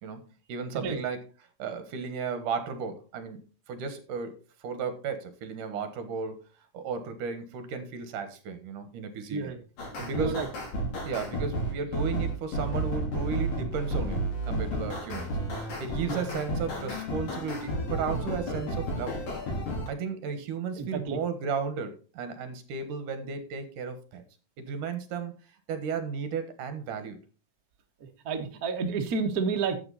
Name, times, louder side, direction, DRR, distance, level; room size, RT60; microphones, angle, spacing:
voice 1, 0.0-1.2 1.6-3.4 3.7-6.4 6.7-9.5 10.0-10.4 11.0-15.3 15.8-19.2 19.9-24.2 24.6-25.3 25.7-27.2, right 5 dB, 70° right, 10 dB, 2.9 m, -34 dB
voice 2, 9.3-9.6 10.1-10.5 16.1-16.2 20.8-21.2 28.2-29.8, right 5 dB, 45° right, 3 dB, 1.2 m, -30 dB
sound 1, 9.8-19.9, right 1 dB, 70° left, 5.1 m, -32 dB
12.0 x 7.7 x 4.1 m, 0.35 s
omnidirectional pair, 3.9 m